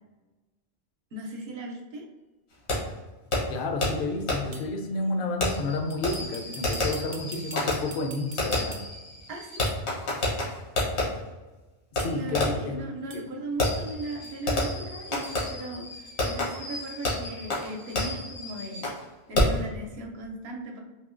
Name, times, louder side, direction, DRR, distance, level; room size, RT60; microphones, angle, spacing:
voice 1, 1.1-2.0 9.3-9.7 12.1-20.8, right 1 dB, 70° right, 0 dB, 0.8 m, -38 dB
Fireworks, 2.7-2.8 3.3-3.4 3.8-3.9 4.3-4.4 5.4-11.0 12.0-12.1 12.3-12.7 13.6-19.0 19.3-19.6, left 2 dB, 80° left, 1.3 m, -29 dB
sound 1, 3.3-3.4 4.5-4.8 5.9-9.1 9.7-9.9 10.8-11.0 12.0-12.4 13.1-13.4 14.2-14.4 15.2-15.4, right 4 dB, 50° right, 0.4 m, -46 dB
voice 2, 3.5-8.8 11.9-12.8 13.1-13.2, left 2 dB, 65° left, 4 dB, 0.7 m, -31 dB
3.6 x 2.7 x 2.5 m, 1.2 s
omnidirectional pair, 1.1 m